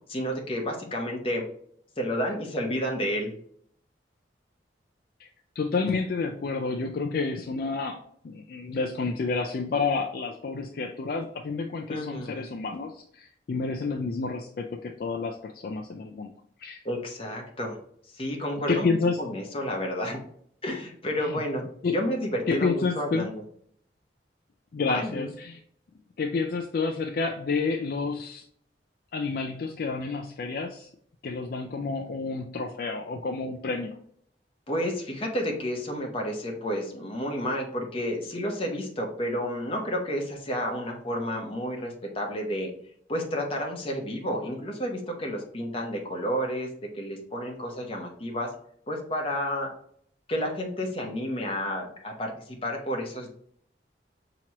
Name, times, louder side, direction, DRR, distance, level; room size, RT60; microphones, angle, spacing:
voice 1, 0.1-1.4 2.0-3.3 11.9-12.4 16.8-17.8 18.1-20.2 20.6-23.4 24.9-25.3 34.7-42.7 43.1-46.7 46.9-48.5 48.9-49.7 50.3-53.3, equal, 30° left, 0 dB, 0.9 m, -31 dB
voice 2, 5.6-16.3 16.6-16.8 18.7-19.2 21.2-21.4 21.8-22.0 22.5-23.3 24.7-25.6 26.2-28.4 29.1-30.9 31.2-34.0, left 4 dB, 55° left, 3 dB, 0.4 m, -29 dB
5.8 x 3.0 x 2.9 m, 0.64 s
head